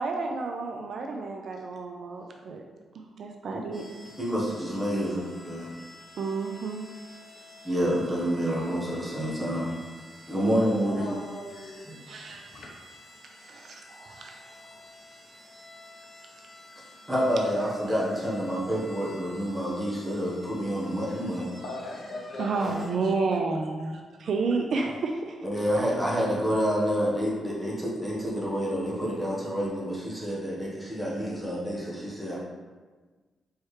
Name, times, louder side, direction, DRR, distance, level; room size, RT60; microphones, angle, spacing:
voice 1, 0.0-2.6 2.9-3.8 6.2-6.8 12.1-12.4 13.4-14.4 22.4-25.4, right 4 dB, 50° right, 3 dB, 0.3 m, -31 dB
sound 1, 3.7-22.9, left 1 dB, 20° left, 0.7 m, -50 dB
voice 2, 4.2-5.7 7.6-9.7 10.3-11.1 17.1-21.6 25.4-32.4, equal, 10° right, -5 dB, 0.9 m, -28 dB
voice 3, 10.9-12.0 12.3-13.0 21.6-23.4, left 2 dB, 60° left, -1 dB, 0.8 m, -40 dB
4.7 x 3.1 x 3.1 m, 1.3 s
wide cardioid pair, 170°, 0 cm